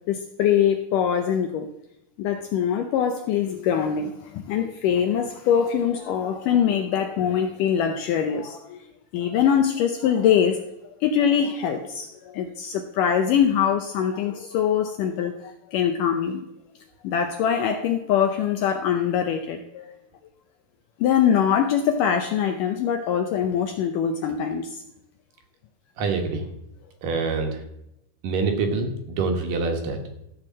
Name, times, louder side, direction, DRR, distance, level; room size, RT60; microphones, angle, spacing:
voice 1, 0.1-1.7 2.2-8.8 9.1-10.6 11.0-16.5 17.0-19.9 21.0-24.8, left 8 dB, 80° left, 5 dB, 1.9 m, -23 dB
voice 2, 26.0-26.5 27.0-27.6 28.2-30.0, right 4 dB, 65° right, 4 dB, 2.6 m, -25 dB
14.0 x 4.8 x 7.3 m, 0.82 s
omnidirectional pair, 4.5 m